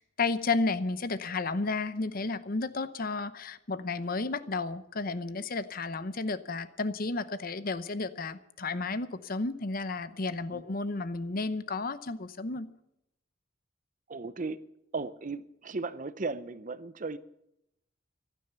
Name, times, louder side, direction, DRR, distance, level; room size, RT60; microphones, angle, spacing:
voice 1, 0.2-12.7, left 3 dB, 50° left, 0.8 m, -32 dB
voice 2, 14.1-14.6 14.9-17.2, right 3 dB, 45° right, 0.7 m, -36 dB
15.5 x 12.0 x 6.9 m
head